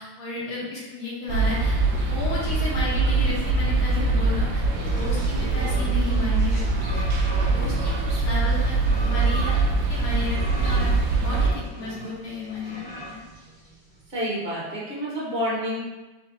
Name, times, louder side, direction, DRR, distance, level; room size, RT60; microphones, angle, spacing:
voice 1, 0.0-6.6 6.9-7.1 7.4-8.7 9.0-9.6 9.9-13.2, left 3 dB, 80° left, -6 dB, 1.9 m, -33 dB
sound 1, 1.3-11.5, right 3 dB, 75° right, 0.7 m, -23 dB
sound 2, 4.6-14.0, right 1 dB, 25° left, 1.0 m, -39 dB
voice 2, 7.3-8.1 14.1-15.9, equal, 40° right, -6 dB, 0.9 m, -30 dB
3.8 x 3.3 x 3.8 m, 1.1 s
omnidirectional pair, 2.2 m